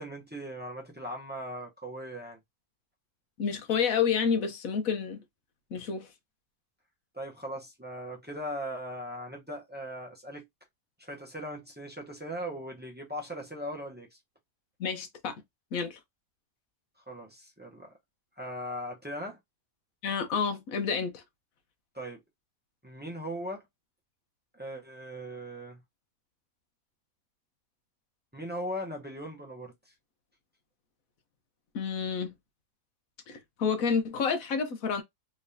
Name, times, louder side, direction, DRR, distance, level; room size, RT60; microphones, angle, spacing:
voice 1, 0.0-2.4 7.1-10.5 11.0-14.2 17.1-17.9 18.4-19.4 21.9-22.2 22.8-23.7 24.5-25.8 28.3-29.9, equal, 10° right, 0.5 m, -39 dB
voice 2, 3.4-5.2 5.7-6.1 14.8-15.3 15.7-16.0 20.0-21.2 31.7-32.3 33.3-35.0, left 6 dB, 65° left, 1.2 m, -29 dB
3.5 x 3.1 x 2.7 m
omnidirectional pair, 1.6 m